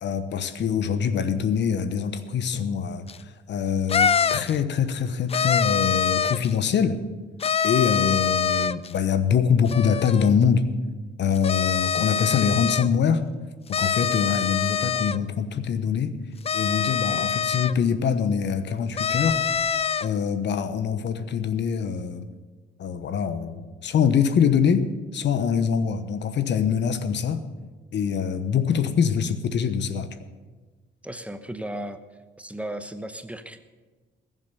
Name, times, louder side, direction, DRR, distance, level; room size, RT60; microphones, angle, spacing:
voice 1, 0.0-7.0 7.6-10.7 11.2-13.2 13.7-16.2 16.5-19.4 20.0-22.3 22.8-27.4 27.9-30.1, left 7 dB, 65° left, 11 dB, 1.1 m, -24 dB
sound 1, 3.1-3.2 3.9-4.6 5.3-6.5 7.4-8.9 9.7-10.3 11.3-12.9 13.7-15.2 16.4-17.7 19.0-20.1, left 7 dB, 30° left, 0.4 m, -24 dB
voice 2, 31.0-32.0 32.4-33.6, right 1 dB, 5° right, 9 dB, 1.0 m, -35 dB
20.5 x 7.6 x 6.8 m, 1.3 s
cardioid pair, 90°, 20 cm